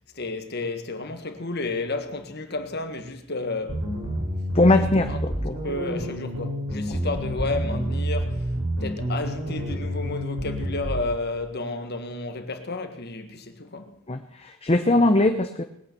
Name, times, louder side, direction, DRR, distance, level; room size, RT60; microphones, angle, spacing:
voice 1, 0.1-3.9 4.6-5.2 5.5-8.5 8.8-13.9, left 3 dB, 50° left, 1.7 m, -32 dB
sound 1, 3.7-11.1, equal, 85° right, 5.0 m, -29 dB
voice 2, 4.5-5.5 14.1-15.6, left 2 dB, 30° left, 0.8 m, -21 dB
20.5 x 8.8 x 6.9 m
head